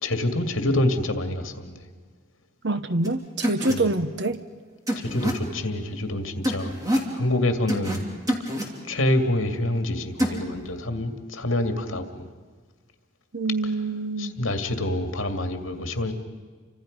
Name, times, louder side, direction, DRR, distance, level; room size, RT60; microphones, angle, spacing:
voice 1, 0.0-1.8 3.7-3.9 5.0-6.7 7.1-8.1 8.9-12.3 14.2-16.1, left 1 dB, 80° left, 6 dB, 2.2 m, -26 dB
voice 2, 2.6-4.4 13.3-14.4, right 2 dB, 60° right, 11 dB, 1.0 m, -26 dB
sound 1, 3.0-3.1 3.4-3.7 4.9-5.3 6.4-7.1 7.7-8.0 8.3-8.6 10.2-10.4, equal, 20° right, 2.9 m, -25 dB
30.0 x 25.5 x 5.3 m, 1.5 s
head